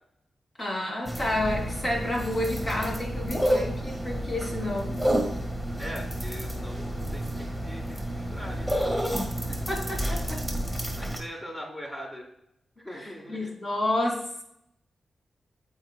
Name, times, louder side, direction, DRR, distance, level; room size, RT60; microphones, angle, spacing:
voice 1, 0.6-5.0 9.5-10.4 13.0-14.4, left 1 dB, 50° left, -1 dB, 2.7 m, -30 dB
sound 1, 1.1-11.2, equal, 10° left, 2.0 m, -30 dB
voice 2, 5.8-8.9 11.0-12.3 12.8-13.5, equal, 30° left, -2 dB, 2.3 m, -41 dB
13.5 x 4.6 x 2.3 m, 0.78 s
cardioid pair, 70°, 0 cm